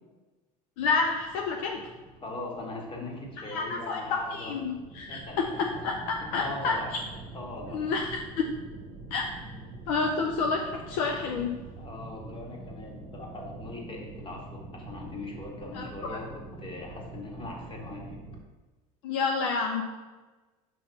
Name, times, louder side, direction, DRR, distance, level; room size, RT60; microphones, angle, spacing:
voice 1, 0.8-1.8 3.5-6.7 7.7-8.4 9.1-9.3 9.9-10.6 10.9-11.7 15.7-16.2 19.0-19.8, left 4 dB, 60° left, 2 dB, 0.7 m, -29 dB
sound 1, 0.8-18.4, right 2 dB, 50° right, 1.0 m, -45 dB
voice 2, 2.2-4.5 5.1-5.8 6.4-6.9 7.3-7.8 11.8-14.4 14.7-18.2, left 2 dB, 25° left, 0 dB, 1.9 m, -40 dB
5.7 x 5.0 x 5.6 m, 1.2 s
figure-of-eight pair, 70°, 20 cm